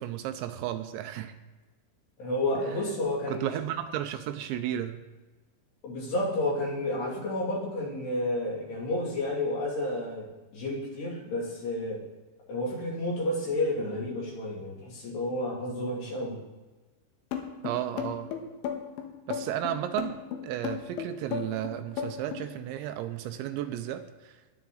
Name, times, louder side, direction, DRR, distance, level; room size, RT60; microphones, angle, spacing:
voice 1, 0.0-1.3 3.3-5.0 17.6-18.3 19.3-20.2 20.4-24.4, right 12 dB, 80° right, 8 dB, 2.8 m, -33 dB
voice 2, 2.2-3.5 5.8-10.3 10.5-12.0 12.5-16.4, left 1 dB, 65° left, -4 dB, 4.8 m, -31 dB
sound 1, 17.3-22.5, left 8 dB, 80° left, 3.5 m, -34 dB
20.0 x 7.1 x 4.0 m, 1.2 s
omnidirectional pair, 5.4 m